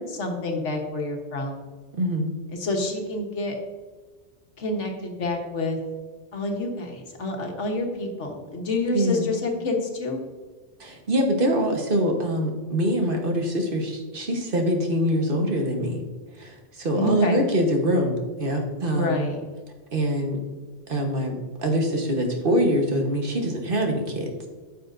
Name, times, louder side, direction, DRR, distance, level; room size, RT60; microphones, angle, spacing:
voice 1, 0.0-1.6 2.5-3.6 4.6-5.8 6.3-10.2 16.9-17.4 18.9-19.4, left 2 dB, 85° left, 2 dB, 1.5 m, -28 dB
voice 2, 1.9-2.3 8.9-9.3 10.8-16.0 16.4-18.1 18.4-19.2 19.9-20.4 20.9-21.3 21.6-24.3, equal, 50° right, 2 dB, 1.4 m, -24 dB
9.3 x 6.7 x 2.6 m, 1.4 s
omnidirectional pair, 1.2 m